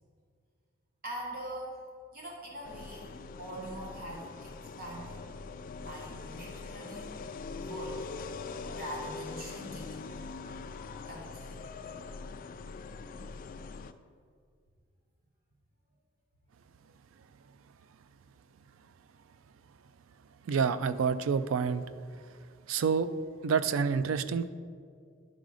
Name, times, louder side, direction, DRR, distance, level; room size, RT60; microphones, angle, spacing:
voice 1, 1.0-1.8 2.1-5.2 5.8-7.2 7.6-8.1 8.7-10.0 11.1-11.6, right 1 dB, 50° right, -3 dB, 1.2 m, -43 dB
sound 1, 2.6-13.9, left 4 dB, 45° left, 0.3 m, -42 dB
voice 2, 20.5-21.8 22.7-23.1 23.4-24.5, right 6 dB, 80° right, 13 dB, 0.4 m, -28 dB
10.5 x 3.9 x 4.9 m, 2.1 s
head